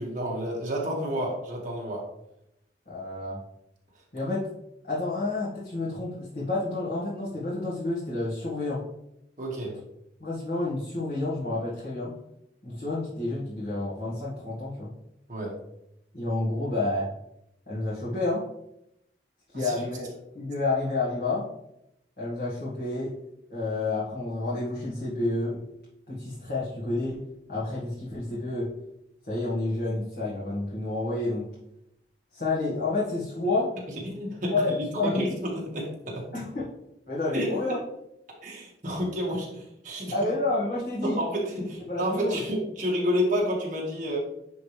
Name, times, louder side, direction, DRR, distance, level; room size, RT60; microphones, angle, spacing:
voice 1, 0.0-2.1 9.4-9.8 15.3-15.6 19.5-19.7 34.0-36.3 37.3-37.7 38.4-40.1 41.0-44.2, equal, 45° right, -3 dB, 1.9 m, -30 dB
voice 2, 2.9-3.4 4.1-4.5 4.8-8.8 10.2-12.1 12.6-14.9 16.1-17.1 17.7-18.5 19.5-21.4 22.2-23.2 23.5-25.6 26.1-27.2 27.5-28.7 29.3-31.5 32.3-33.7 34.5-35.3 36.3-36.7 37.1-37.8 40.1-41.2 41.9-42.4, left 2 dB, 60° left, -9 dB, 2.0 m, -29 dB
9.8 x 4.0 x 3.4 m, 0.83 s
head